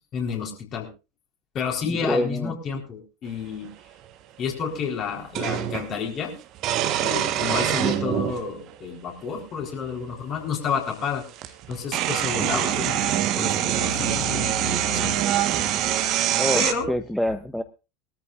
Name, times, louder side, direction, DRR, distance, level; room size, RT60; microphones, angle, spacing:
voice 1, 0.1-0.9 1.5-3.7 4.4-6.3 7.0-11.2 11.7-15.7 16.5-16.9, left 6 dB, 35° left, 2 dB, 4.0 m, -30 dB
voice 2, 1.9-2.5 16.3-17.6, equal, ahead, 10 dB, 0.7 m, -26 dB
sound 1, 3.6-3.7 5.3-5.9 6.6-8.4 9.3-9.4 10.9-11.0 11.4-16.7, right 12 dB, 40° right, 1.2 m, -24 dB
22.0 x 13.5 x 2.5 m, 0.29 s
figure-of-eight pair, 80°, 0 cm